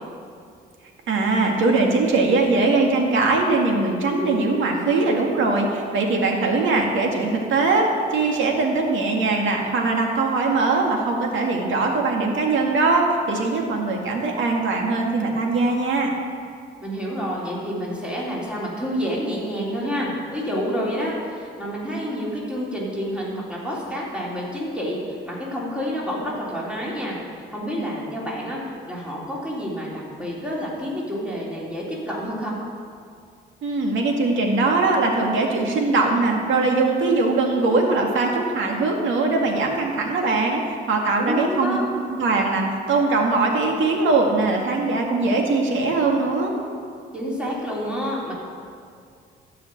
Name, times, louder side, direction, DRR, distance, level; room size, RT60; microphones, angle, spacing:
voice 1, 1.1-16.1 33.6-40.6 40.9-41.8 42.2-46.5, right 3 dB, 75° right, 1 dB, 2.1 m, -21 dB
voice 2, 16.8-28.6 28.9-32.5 41.2-41.9 47.1-48.3, equal, 5° right, -6 dB, 3.6 m, -28 dB
13.0 x 5.7 x 9.0 m, 2.2 s
cardioid pair, 90°, 20 cm